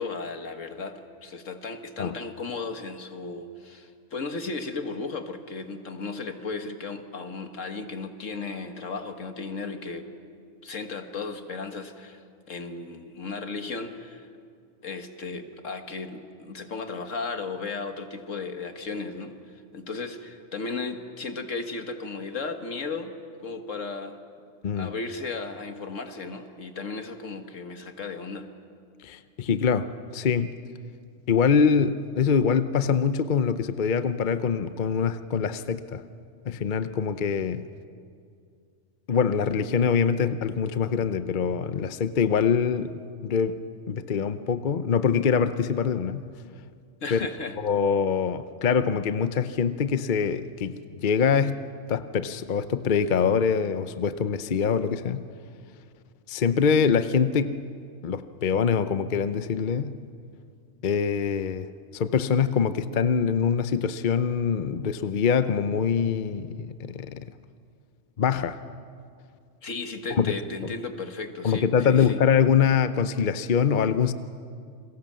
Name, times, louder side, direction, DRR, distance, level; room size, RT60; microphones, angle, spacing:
voice 1, 0.0-10.1 10.6-12.2 12.5-14.3 14.8-23.1 23.4-24.2 24.7-28.5 47.0-47.6 69.6-72.2, left 4 dB, 75° left, 7 dB, 1.9 m, -35 dB
voice 2, 29.0-30.5 31.3-36.0 36.5-37.6 39.1-42.9 43.2-43.6 43.9-46.2 47.1-47.2 47.6-55.3 56.3-57.6 58.0-60.0 60.8-67.2 68.2-68.6 70.1-70.3 71.4-74.1, left 6 dB, 45° left, 11 dB, 0.8 m, -24 dB
29.5 x 22.5 x 7.6 m, 2.3 s
omnidirectional pair, 1.3 m